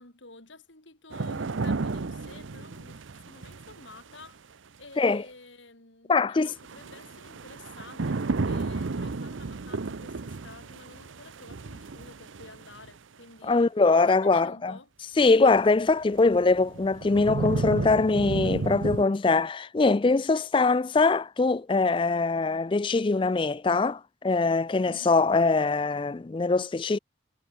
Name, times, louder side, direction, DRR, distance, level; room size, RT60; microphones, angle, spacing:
voice 1, 0.0-4.4 4.8-13.7 14.1-14.9 24.8-25.2, left 3 dB, 75° left, 6.5 m, -50 dB
sound 1, 1.1-4.2 6.6-12.9 15.5-15.6 16.2-19.0, right 3 dB, 80° right, 0.7 m, -33 dB
voice 2, 6.1-6.5 13.4-14.7 15.2-27.0, left 3 dB, 25° left, 0.4 m, -23 dB
head